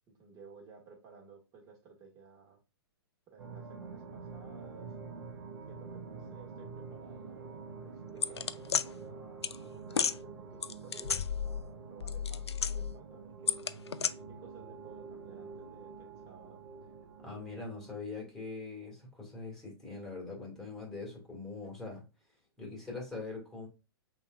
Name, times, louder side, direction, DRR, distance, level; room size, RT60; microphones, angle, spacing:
voice 1, 0.1-2.6 3.3-4.9 5.7-13.6 14.3-16.6, right 4 dB, 25° right, 1.8 m, -56 dB
sound 1, 3.4-17.9, right 4 dB, 70° right, 1.0 m, -47 dB
sound 2, 8.2-8.8 9.4-9.6 9.9-10.2 10.6-11.7 12.0-13.0 13.5-14.1, left 7 dB, 85° left, 0.4 m, -32 dB
voice 2, 17.2-22.0 22.6-23.7, left 3 dB, ahead, 2.0 m, -42 dB
5.5 x 2.9 x 2.4 m
figure-of-eight pair, 115°, 13 cm